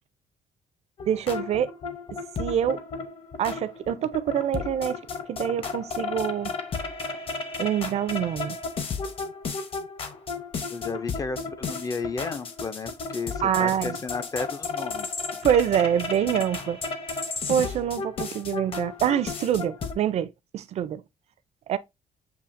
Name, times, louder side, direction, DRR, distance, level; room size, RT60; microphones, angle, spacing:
sound 1, 1.0-19.9, left 4 dB, 45° left, 0.8 m, -34 dB
voice 1, 1.1-1.7 2.4-2.8 3.4-5.0 5.3-6.5 7.6-8.6 13.4-14.0 15.4-16.8 17.5-21.0 21.7-21.8, right 9 dB, 55° right, 0.4 m, -25 dB
voice 2, 10.7-15.1, left 4 dB, 25° left, 0.3 m, -33 dB
7.0 x 2.7 x 2.5 m
cardioid pair, 155°, 14 cm